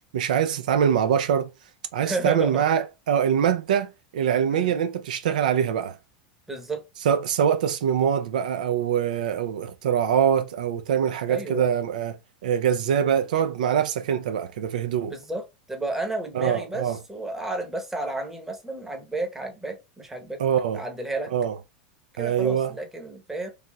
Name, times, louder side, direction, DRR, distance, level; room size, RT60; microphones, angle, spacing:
voice 1, 0.1-1.5 1.9-6.0 7.0-12.2 12.4-15.1 16.3-17.0 20.4-20.8 21.3-21.5 22.2-22.7, right 8 dB, 80° right, 0.4 m, -24 dB
voice 2, 2.0-2.6 4.5-4.7 6.5-6.8 11.3-11.7 15.1-15.4 15.7-20.4 20.7-21.3 22.2-23.5, right 2 dB, 10° right, 0.8 m, -32 dB
3.2 x 2.7 x 2.2 m
hypercardioid pair, 110°, 4 cm